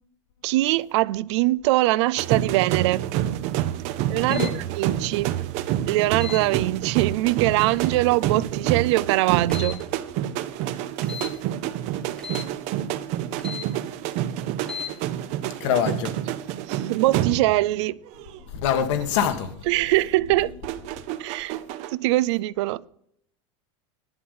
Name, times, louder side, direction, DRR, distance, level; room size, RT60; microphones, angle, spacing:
voice 1, 0.4-3.1 4.1-5.3 5.8-9.8 16.3-16.4 16.7-18.0 19.6-20.5 21.2-21.6 21.9-22.8, right 18 dB, 65° right, 0.4 m, -22 dB
sound 1, 2.2-17.8 18.1-18.4 20.6-21.9, right 12 dB, 45° right, 0.8 m, -28 dB
sound 2, 4.2-4.5 6.2-6.4 7.7-8.0 9.5-9.8 11.0-11.3 12.2-12.5 13.4-13.7 14.6-14.9, left 6 dB, 5° left, 0.9 m, -36 dB
voice 2, 15.6-16.1 18.5-19.6 20.4-20.5, left 8 dB, 65° left, 1.5 m, -24 dB
11.5 x 7.8 x 5.5 m
supercardioid pair, 160°, 16 cm